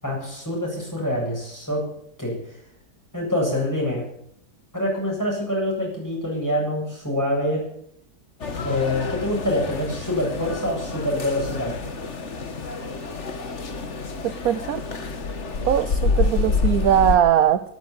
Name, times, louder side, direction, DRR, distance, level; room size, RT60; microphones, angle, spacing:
voice 1, 0.0-1.9 2.2-2.3 3.1-4.0 4.7-7.6 8.6-11.7, left 1 dB, 10° left, -3 dB, 8.1 m, -25 dB
sound 1, 8.4-17.2, left 4 dB, 45° left, 1.7 m, -28 dB
voice 2, 14.4-14.8 15.6-17.6, right 10 dB, 65° right, 12 dB, 1.1 m, -20 dB
13.0 x 12.0 x 8.6 m, 0.71 s
omnidirectional pair, 1.9 m